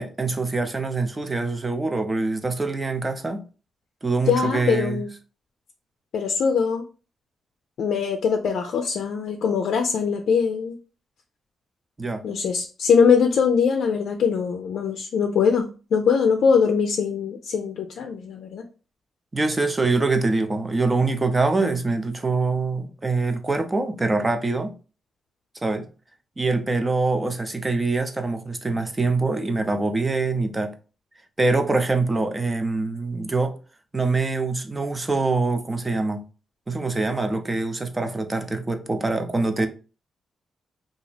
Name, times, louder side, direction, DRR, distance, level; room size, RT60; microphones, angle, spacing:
voice 1, 0.0-3.5 4.0-5.0 12.0-12.2 19.3-24.7 25.6-25.9 26.4-30.7 31.4-33.5 33.9-36.2 36.7-39.7, right 3 dB, 20° right, 0.5 m, -24 dB
voice 2, 4.3-5.1 6.1-6.8 7.8-10.8 12.2-18.6, left 6 dB, 75° left, 0.4 m, -22 dB
2.8 x 2.4 x 3.9 m
cardioid pair, 90°, 0 cm